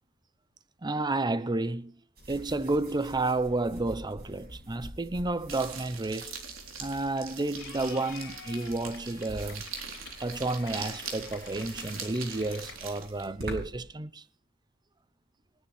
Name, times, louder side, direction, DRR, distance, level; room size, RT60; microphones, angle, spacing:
voice 1, 0.8-1.9 2.3-6.4 6.8-9.7 10.2-14.2, right 2 dB, 20° right, 0.7 m, -31 dB
sound 1, 2.2-13.9, right 1 dB, 50° right, 6.3 m, -47 dB
sound 2, 5.5-13.3, right 6 dB, 70° right, 3.5 m, -42 dB
Clapping / Cheering, 7.6-12.7, left 6 dB, 65° left, 4.1 m, -48 dB
27.5 x 9.6 x 3.3 m
head